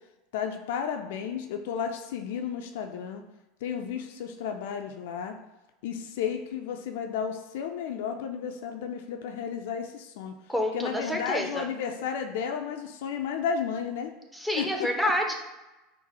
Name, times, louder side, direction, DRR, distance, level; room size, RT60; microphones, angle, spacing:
voice 1, 0.3-3.2 3.6-5.3 5.8-10.3 10.7-14.1 14.6-14.9, left 7 dB, 65° left, 5 dB, 0.4 m, -33 dB
voice 2, 10.5-11.6 14.3-15.3, equal, 5° right, 1 dB, 0.7 m, -28 dB
4.0 x 2.1 x 4.1 m, 1.0 s
hypercardioid pair, 80°, 0 cm